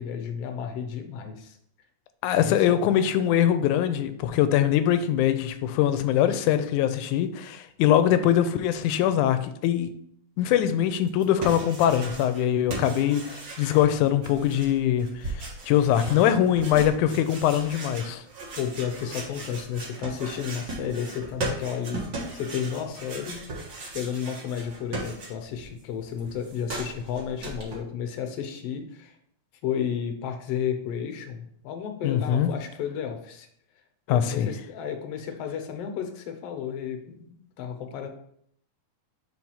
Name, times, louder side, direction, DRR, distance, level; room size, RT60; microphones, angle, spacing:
voice 1, 0.0-1.6 2.4-2.7 15.9-16.5 18.6-23.4 23.9-29.1 29.6-33.5 34.1-38.1, left 8 dB, 70° left, 6 dB, 1.6 m, -32 dB
voice 2, 2.2-9.9 10.4-15.1 15.4-18.2 32.0-32.5 34.1-34.5, left 10 dB, 85° left, 10 dB, 2.0 m, -22 dB
sound 1, 11.1-12.4 12.7-25.7 25.9-27.8, right 2 dB, 45° right, 1.9 m, -37 dB
4.8 x 4.6 x 5.5 m, 0.68 s
omnidirectional pair, 3.5 m